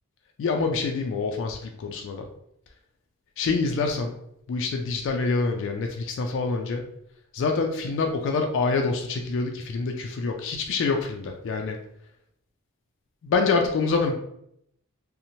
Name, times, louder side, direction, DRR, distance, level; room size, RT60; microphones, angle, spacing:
voice 1, 0.4-2.3 3.4-4.1 4.5-6.8 7.3-11.8 13.2-14.1, left 4 dB, 60° left, 3 dB, 0.3 m, -26 dB
2.6 x 2.0 x 2.8 m, 0.74 s
head